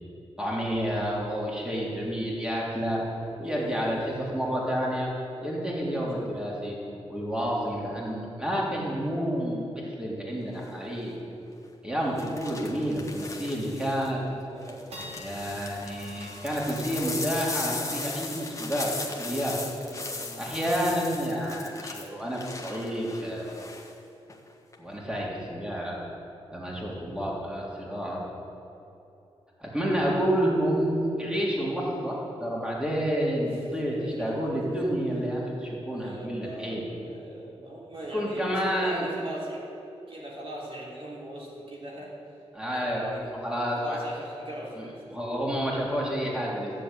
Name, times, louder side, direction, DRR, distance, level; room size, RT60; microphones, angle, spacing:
voice 1, 0.4-3.0 3.4-5.1 5.4-6.8 7.1-11.2 11.8-14.2 15.2-19.6 20.4-23.5 24.8-26.0 26.5-28.2 29.6-36.8 38.1-39.0 42.5-44.0 44.8-44.9 45.1-46.7, equal, 10° right, -5 dB, 3.4 m, -29 dB
voice 2, 3.4-4.6 14.5-15.3 19.8-20.6 21.1-21.3 26.9-27.2 33.5-33.7 34.0-35.0 35.9-42.2 42.7-43.4 43.7-45.0, right 1 dB, 55° right, -4 dB, 3.5 m, -41 dB
sound 1, 10.5-10.9 12.2-14.1 14.6-23.9 24.3-24.7, left 3 dB, 30° left, 1.5 m, -38 dB
sound 2, 14.7-21.0, equal, 75° right, 4.2 m, -50 dB
14.5 x 7.6 x 9.0 m, 2.9 s
wide cardioid pair, 95°, 11 cm